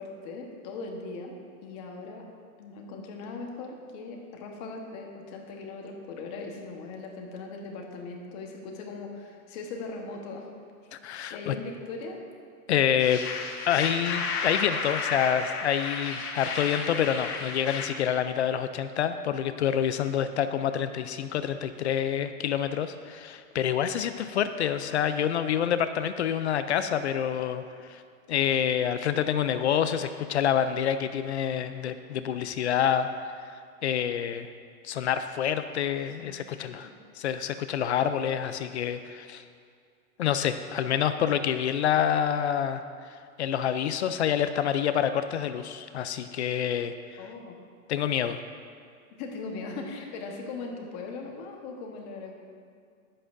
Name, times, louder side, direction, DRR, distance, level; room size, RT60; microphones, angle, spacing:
voice 1, 0.0-1.4 1.6-2.2 2.6-10.5 11.0-12.2 36.2-36.4 36.7-36.9 47.2-47.6 49.2-52.3, left 3 dB, 25° left, 1 dB, 1.2 m, -39 dB
voice 2, 10.9-11.6 12.7-13.2 13.7-27.6 27.9-28.0 28.3-33.5 33.8-34.5 34.8-36.9 37.2-39.4 40.2-47.2 47.9-48.4, left 9 dB, 50° left, 10 dB, 0.4 m, -27 dB
sound 1, 13.0-17.9, left 4 dB, 85° left, 1.9 m, -32 dB
20.5 x 7.7 x 2.6 m, 2.2 s
supercardioid pair, 165°, 45 cm